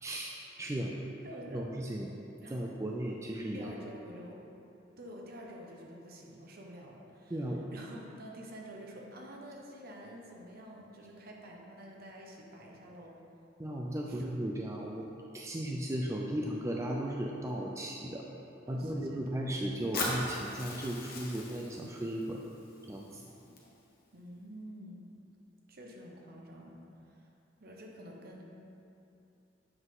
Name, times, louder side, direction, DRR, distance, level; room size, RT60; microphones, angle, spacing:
voice 1, 0.0-1.0 1.5-2.1 2.5-3.7 7.3-7.6 13.6-15.1 15.3-18.2 18.7-22.4 22.9-23.2, right 1 dB, 15° right, -1 dB, 0.4 m, -36 dB
voice 2, 1.2-1.7 2.4-2.7 3.5-4.4 5.0-7.4 7.7-13.1 14.0-14.3 18.7-19.5 24.1-25.1 25.7-26.8 27.0-27.3 27.6-28.4, equal, 55° right, 0 dB, 1.0 m, -48 dB
Fire, 19.9-24.0, left 2 dB, 55° left, 1.2 m, -40 dB
7.9 x 5.8 x 3.7 m, 2.8 s
head